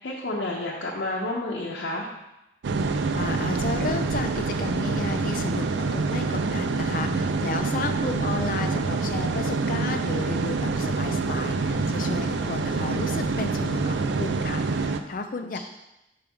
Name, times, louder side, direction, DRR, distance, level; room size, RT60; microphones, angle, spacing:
voice 1, 0.0-2.1, left 2 dB, 75° left, -3 dB, 0.7 m, -30 dB
sound 1, 2.6-15.0, right 3 dB, 80° right, 0.4 m, -26 dB
voice 2, 3.1-15.6, left 3 dB, 50° left, 6 dB, 0.5 m, -33 dB
5.6 x 3.5 x 5.3 m, 0.93 s
head